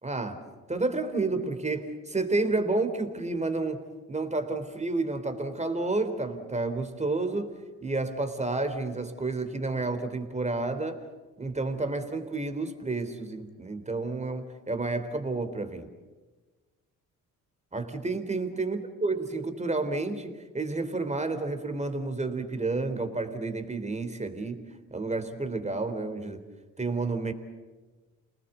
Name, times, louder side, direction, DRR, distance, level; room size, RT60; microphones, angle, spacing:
voice 1, 0.0-0.4 0.7-7.5 7.8-11.0 11.4-15.9 17.7-24.6 24.9-26.4 26.8-27.3, right 3 dB, 20° right, 9 dB, 3.6 m, -30 dB
29.0 x 20.0 x 8.2 m, 1.3 s
supercardioid pair, 65°, 37 cm